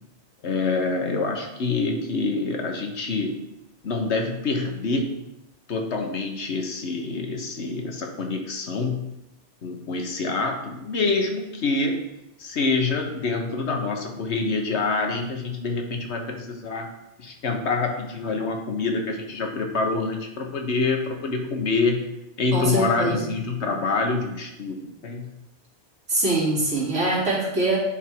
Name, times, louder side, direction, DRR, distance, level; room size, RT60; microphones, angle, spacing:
voice 1, 0.4-3.4 3.8-5.2 5.7-9.0 9.6-12.0 12.4-16.9 17.2-22.1 22.4-24.8 25.0-25.3, left 3 dB, 70° left, 3 dB, 1.4 m, -26 dB
voice 2, 22.5-23.3 26.1-27.8, right 2 dB, 90° right, -6 dB, 2.8 m, -23 dB
10.0 x 3.6 x 4.5 m, 0.88 s
omnidirectional pair, 1.2 m